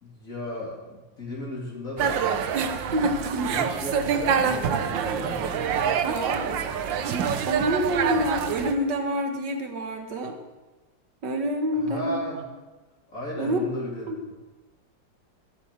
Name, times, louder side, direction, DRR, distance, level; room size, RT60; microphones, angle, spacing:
voice 1, 0.0-2.3 3.2-5.9 11.8-12.4 13.1-14.1, left 1 dB, 45° left, -4 dB, 3.2 m, -35 dB
sound 1, 2.0-8.7, right 7 dB, 85° right, 1.6 m, -26 dB
voice 2, 2.9-3.6 5.8-6.6 7.1-10.4 11.2-12.4 13.4-13.6 14.1-14.2, right 1 dB, 70° right, 5 dB, 2.2 m, -28 dB
13.0 x 8.8 x 7.4 m, 1.2 s
omnidirectional pair, 2.0 m